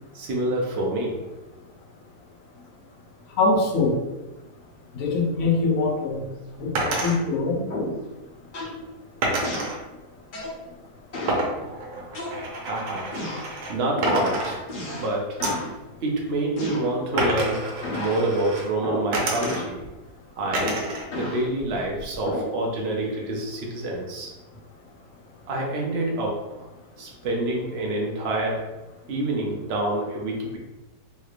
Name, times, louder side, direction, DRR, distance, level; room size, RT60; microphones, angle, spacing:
voice 1, 0.1-1.2 12.6-13.2 13.7-14.6 14.9-15.4 16.0-19.8 20.4-20.7 21.1-24.3 25.5-26.4 27.0-28.7 29.1-30.6, right 2 dB, 55° right, -1 dB, 0.7 m, -27 dB
voice 2, 3.4-4.0 4.9-6.2 6.6-7.6, left 3 dB, 65° left, 0 dB, 0.9 m, -23 dB
sound 1, 6.8-7.2 9.2-9.8 11.3-13.8 14.0-15.0 15.4-15.7 17.2-18.7 19.1-19.9 20.5-21.1 21.4-22.2, right 2 dB, 90° right, 1.4 m, -28 dB
sound 2, 7.7-8.1 8.5-8.8 9.4-9.8 10.3-10.6 11.1-11.5 12.1-12.7 13.1-13.5 14.0-14.3 14.7-15.1 15.4-15.7 16.6-17.5 17.8-18.2 18.8-19.1 19.4-19.8 20.6-21.4 22.3-22.6, left 1 dB, 85° left, 0.4 m, -32 dB
3.2 x 3.1 x 2.4 m, 1.0 s
omnidirectional pair, 1.8 m